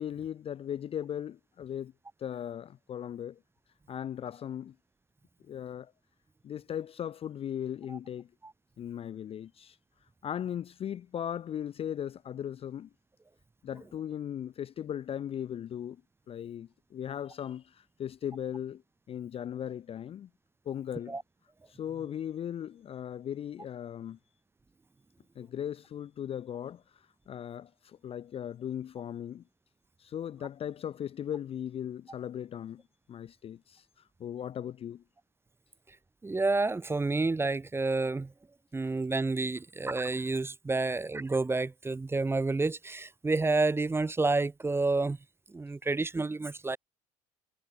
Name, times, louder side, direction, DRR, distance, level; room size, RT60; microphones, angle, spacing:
voice 1, 0.0-1.9 2.2-3.4 3.9-4.7 5.5-5.9 6.4-8.3 8.8-9.8 10.2-12.9 13.6-16.0 16.3-18.8 19.1-20.3 20.7-21.2 21.7-24.2 25.4-26.8 27.3-29.4 30.0-32.8 33.1-33.8 34.2-35.0, left 9 dB, 35° left, 0.4 m, -38 dB
voice 2, 36.2-38.3 38.7-45.2 45.5-46.8, right 3 dB, 15° right, 0.6 m, -29 dB
hypercardioid pair, 65°, 17 cm